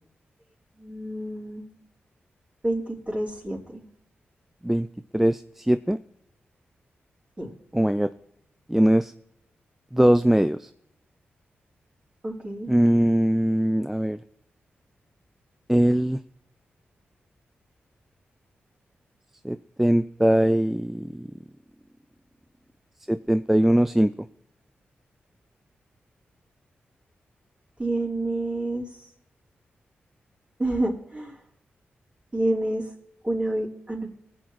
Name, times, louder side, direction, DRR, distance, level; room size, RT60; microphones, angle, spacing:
voice 1, 0.8-1.7 2.6-3.8 7.4-7.5 12.2-12.7 27.8-29.1 30.6-31.4 32.3-32.9 33.2-34.1, right 1 dB, 25° right, -3 dB, 3.5 m, -28 dB
voice 2, 5.1-6.0 7.7-8.1 8.7-9.1 9.9-10.7 12.7-14.2 15.7-16.2 19.4-21.3 23.1-24.1, right 1 dB, 5° right, 11 dB, 0.4 m, -21 dB
19.5 x 7.9 x 3.1 m, 0.77 s
supercardioid pair, 40°, 4 cm